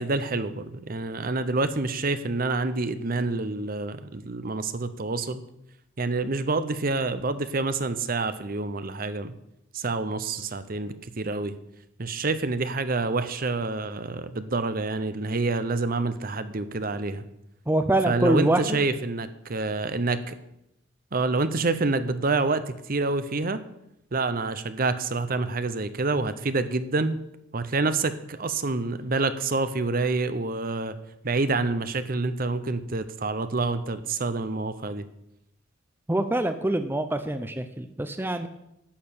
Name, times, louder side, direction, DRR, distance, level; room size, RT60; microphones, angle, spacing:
voice 1, 0.0-5.4 6.0-9.3 9.7-11.5 12.0-17.2 18.1-20.3 21.1-23.6 24.1-27.2 27.5-30.9 31.2-35.1, right 3 dB, 45° right, 12 dB, 0.8 m, -27 dB
voice 2, 17.7-18.8 36.1-38.5, right 1 dB, 10° right, 9 dB, 0.6 m, -25 dB
11.5 x 6.8 x 8.5 m, 0.82 s
head